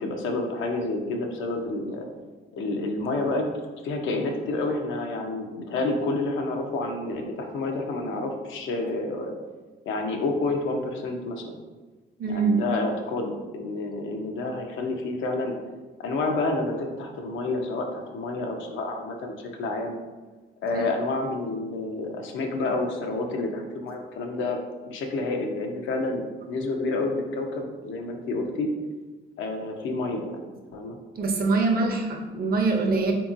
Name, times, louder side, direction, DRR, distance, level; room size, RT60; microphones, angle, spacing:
voice 1, 0.0-2.1 2.5-3.4 3.8-9.3 9.9-11.6 12.3-15.6 16.0-20.0 20.6-24.6 24.8-28.7 29.4-31.0, left 2 dB, 75° left, 3 dB, 0.6 m, -29 dB
voice 2, 12.2-12.6 20.7-20.8 31.2-33.1, right 3 dB, 50° right, 2 dB, 0.6 m, -24 dB
3.6 x 2.8 x 2.5 m, 1.3 s
cardioid pair, 90°, 20 cm